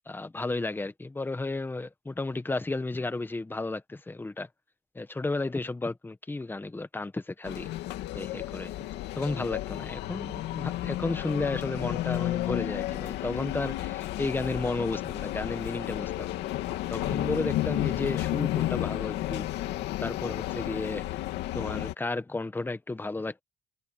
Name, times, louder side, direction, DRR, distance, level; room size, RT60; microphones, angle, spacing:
voice 1, 0.1-4.5 4.9-7.7 8.1-8.7 9.2-16.4 16.9-21.2 21.5-23.4, left 2 dB, 10° left, 1.4 m, -33 dB
sound 1, 7.4-21.9, left 15 dB, 85° left, 2.6 m, -32 dB
cardioid pair, 110°, 17 cm